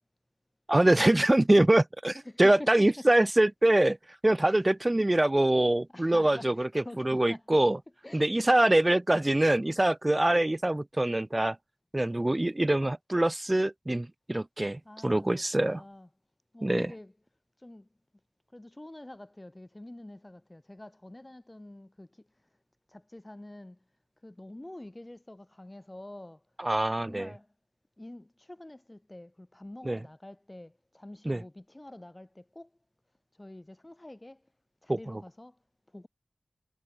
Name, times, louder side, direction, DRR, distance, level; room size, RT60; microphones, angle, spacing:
voice 1, 0.7-4.0 4.2-7.8 8.1-11.6 11.9-15.8 16.6-16.9 26.6-27.3 29.8-30.0 31.2-31.4 34.9-35.2, right 1 dB, 25° right, 0.4 m, -24 dB
voice 2, 2.1-2.9 4.4-5.0 5.9-7.6 8.0-8.7 14.9-16.1 16.5-17.1 17.6-17.9 18.5-22.1 22.9-23.8 24.2-26.4 27.0-27.5 28.0-32.7 33.4-34.4 34.8-35.5 35.9-36.1, left 1 dB, 20° left, 4.3 m, -47 dB
wide cardioid pair, 60°, 0 cm